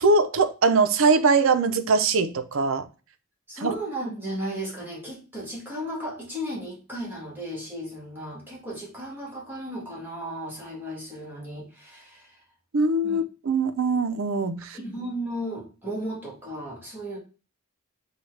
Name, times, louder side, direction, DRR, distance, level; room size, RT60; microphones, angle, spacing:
voice 1, 0.0-2.8 3.6-3.7 12.7-14.8, right 3 dB, 75° right, 0.6 m, -22 dB
voice 2, 3.5-12.4 13.0-13.2 14.7-17.2, equal, 10° right, 1.7 m, -35 dB
6.9 x 2.4 x 3.2 m
head